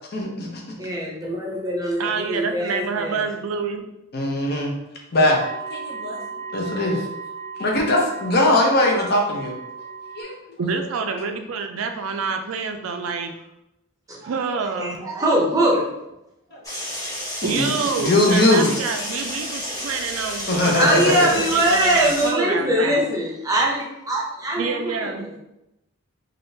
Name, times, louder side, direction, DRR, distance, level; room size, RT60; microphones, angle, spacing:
voice 1, 0.1-0.6 4.1-4.7 5.1-5.4 5.7-6.2 6.5-7.0 7.6-9.5 10.2-10.3 16.5-16.6 17.4-18.7 20.5-21.3, left 1 dB, 50° left, 0 dB, 0.6 m, -20 dB
voice 2, 0.8-3.3 14.1-14.3 14.6-15.8 20.7-25.4, right 1 dB, 15° right, -3 dB, 0.6 m, -22 dB
voice 3, 2.0-3.8 10.6-13.4 14.2-15.1 17.4-23.0 24.6-25.4, right 5 dB, 80° right, 6 dB, 0.4 m, -27 dB
sound 1, 5.2-10.2, right 5 dB, 70° left, 1.0 m, -35 dB
sound 2, 16.6-22.3, left 1 dB, 15° left, 0.8 m, -31 dB
3.5 x 2.4 x 2.7 m, 0.90 s
head